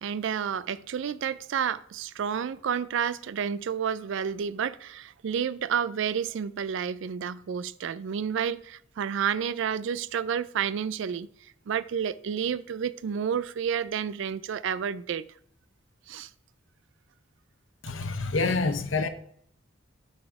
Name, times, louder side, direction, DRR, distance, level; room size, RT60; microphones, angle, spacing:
voice 1, 0.0-11.3 11.7-15.2 16.1-16.3, right 7 dB, 65° right, 0.3 m, -30 dB
voice 2, 17.8-19.1, left 3 dB, 65° left, 0.8 m, -27 dB
12.0 x 4.2 x 4.6 m
head